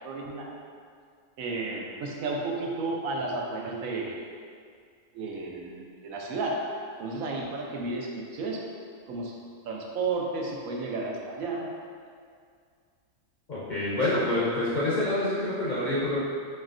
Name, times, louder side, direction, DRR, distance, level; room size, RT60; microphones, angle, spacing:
voice 1, 0.0-0.5 1.4-4.2 5.1-6.6 7.0-8.6 9.1-9.4 9.6-11.7, right 3 dB, 80° right, -1 dB, 1.0 m, -32 dB
voice 2, 13.5-16.2, left 1 dB, 50° left, -9 dB, 0.6 m, -27 dB
4.4 x 3.1 x 2.5 m, 2.1 s
omnidirectional pair, 1.5 m